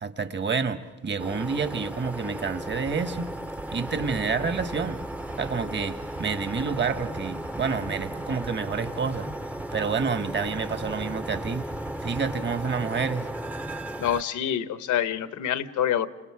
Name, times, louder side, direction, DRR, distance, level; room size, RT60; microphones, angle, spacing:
voice 1, 0.0-3.3 3.7-5.0 5.4-9.3 9.7-11.7 12.0-13.3, right 5 dB, 35° right, 10 dB, 1.4 m, -29 dB
sound 1, 1.2-14.2, right 1 dB, 5° right, 0.7 m, -35 dB
sound 2, 2.7-12.6, right 5 dB, 75° right, 2.8 m, -43 dB
voice 2, 14.0-16.1, left 10 dB, 75° left, 13 dB, 1.1 m, -26 dB
29.5 x 27.0 x 4.9 m, 1.2 s
cardioid pair, 90°, 30 cm